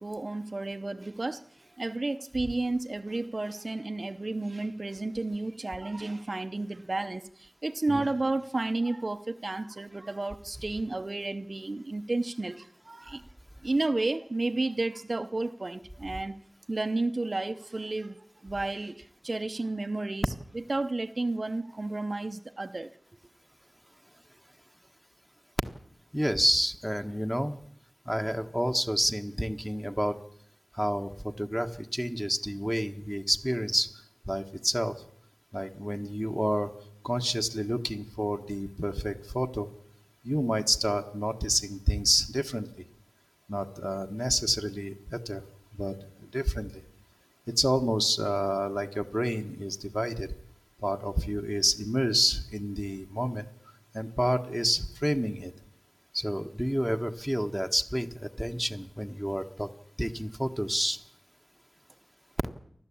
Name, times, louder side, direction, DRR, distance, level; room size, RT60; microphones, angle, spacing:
voice 1, 0.0-1.4 1.8-13.2 13.6-16.4 16.7-18.2 18.4-20.3 20.7-22.9, right 2 dB, 50° right, 0.8 m, -32 dB
voice 2, 26.1-27.6 28.0-30.2 30.8-33.9 34.3-35.0 35.5-36.7 37.0-39.7 40.2-42.7 43.5-45.4 45.8-46.8 47.6-50.3 50.8-53.5 53.9-55.5 56.1-59.7 60.0-61.0, equal, ahead, 1.5 m, -29 dB
29.0 x 12.0 x 8.7 m
wide cardioid pair, 70°, 0 cm